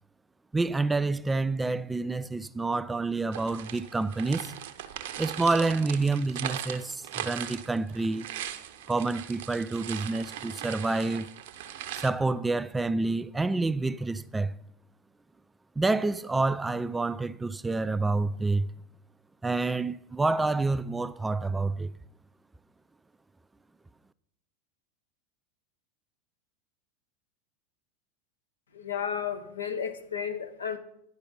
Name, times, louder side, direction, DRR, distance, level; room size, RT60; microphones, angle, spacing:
voice 1, 0.5-4.5 5.2-8.3 8.9-11.3 12.0-14.5 15.8-18.7 19.4-21.9, right 3 dB, 10° right, 0.3 m, -28 dB
sound 1, 3.3-12.1, right 10 dB, 65° right, 0.6 m, -39 dB
voice 2, 28.7-30.8, left 7 dB, 80° left, 0.8 m, -33 dB
10.5 x 4.8 x 5.4 m
figure-of-eight pair, 85°, 0 cm